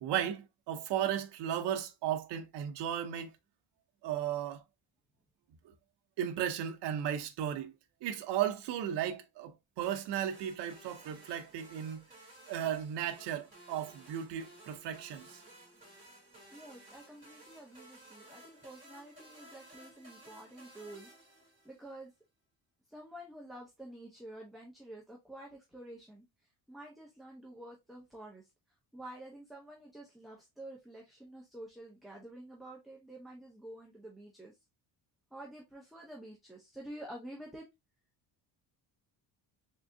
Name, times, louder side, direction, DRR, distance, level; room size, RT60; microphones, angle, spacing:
voice 1, 0.0-3.3 4.0-4.6 6.2-7.7 8.0-12.0 12.5-15.4, right 10 dB, 75° right, 0.8 m, -35 dB
sound 1, 9.8-22.0, right 1 dB, 20° right, 2.5 m, -56 dB
voice 2, 16.5-21.1 21.6-22.1 22.9-26.2 26.7-28.5 28.9-34.6 35.3-37.6, right 1 dB, ahead, 0.7 m, -49 dB
3.7 x 3.4 x 2.6 m
cardioid pair, 155°, 42 cm